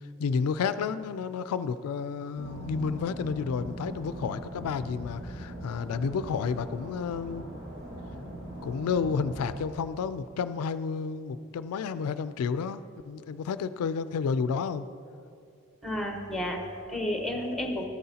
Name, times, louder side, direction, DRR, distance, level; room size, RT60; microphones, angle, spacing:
voice 1, 0.2-7.4 8.6-14.9, left 5 dB, 85° left, 13 dB, 0.3 m, -31 dB
sound 1, 2.4-9.6, right 1 dB, 60° right, 1.8 m, -41 dB
voice 2, 15.8-17.8, left 1 dB, ahead, 1 dB, 0.8 m, -31 dB
13.5 x 9.3 x 2.8 m, 2.5 s
head